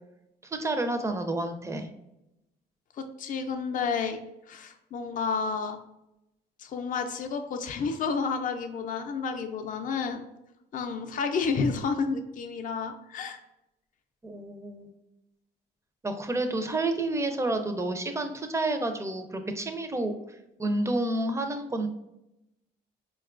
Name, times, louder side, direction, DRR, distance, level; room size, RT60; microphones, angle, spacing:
voice 1, 0.4-1.9 14.2-14.9 16.0-20.1 20.6-21.9, right 2 dB, 15° right, 6 dB, 0.4 m, -29 dB
voice 2, 3.0-4.2 4.5-5.8 6.6-10.2 10.7-13.4, left 5 dB, 45° left, 6 dB, 0.4 m, -30 dB
4.2 x 2.3 x 2.4 m, 0.89 s
cardioid pair, 75°, 18 cm